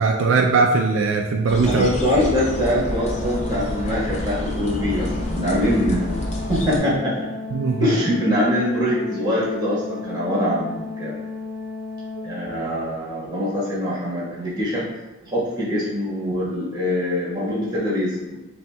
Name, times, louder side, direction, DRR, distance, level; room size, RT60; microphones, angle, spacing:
voice 1, 0.0-1.9 7.5-7.9, right 4 dB, 70° right, 1 dB, 0.3 m, -19 dB
sound 1, 1.5-6.8, left 1 dB, 35° left, 0.5 m, -29 dB
voice 2, 1.6-6.2 6.5-7.3 7.8-11.1 12.2-14.9 15.2-18.4, equal, 20° right, -7 dB, 1.3 m, -23 dB
Organ, 2.0-12.9, left 3 dB, 55° right, 0.8 m, -34 dB
6.9 x 2.7 x 2.2 m, 1.1 s
head